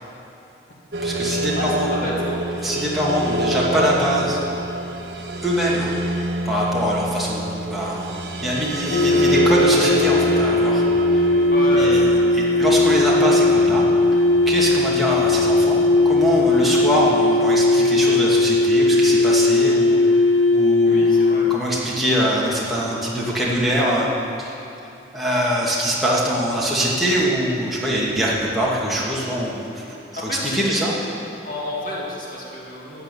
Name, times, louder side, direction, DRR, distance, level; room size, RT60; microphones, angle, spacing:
sound 1, 0.9-17.1, right 1 dB, 60° right, 1.5 m, -28 dB
voice 1, 1.0-1.9 2.6-4.4 5.4-5.9 6.4-8.1 8.4-10.8 11.1-11.2 11.7-12.0 12.3-13.8 14.5-15.8 16.0-20.2 20.5-24.1 24.4-24.5 25.1-30.0 30.5-30.9, equal, ahead, -7 dB, 2.3 m, -23 dB
voice 2, 1.6-2.4 11.5-12.2 20.9-21.5 30.3-30.8 31.4-33.0, left 1 dB, 50° left, -4 dB, 2.2 m, -30 dB
sound 2, 8.9-21.6, left 2 dB, 90° left, 0.7 m, -18 dB
13.5 x 7.9 x 9.2 m, 2.9 s
head